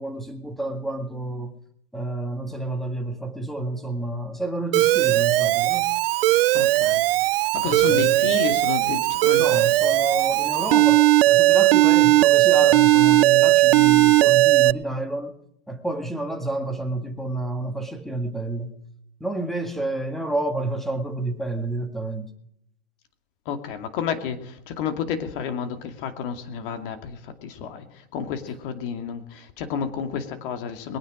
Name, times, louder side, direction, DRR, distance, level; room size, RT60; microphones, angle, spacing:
voice 1, 0.0-1.5 1.9-5.9 7.7-8.2 9.4-15.3 15.7-18.8 19.2-22.3, right 2 dB, ahead, 1.9 m, -29 dB
Alarm, 4.7-14.7, right 18 dB, 65° right, 0.4 m, -18 dB
voice 2, 6.5-7.0 7.5-9.4 23.5-27.8 28.1-31.0, left 7 dB, 55° left, 2.5 m, -30 dB
21.5 x 9.6 x 5.1 m
hypercardioid pair, 130°, 32 cm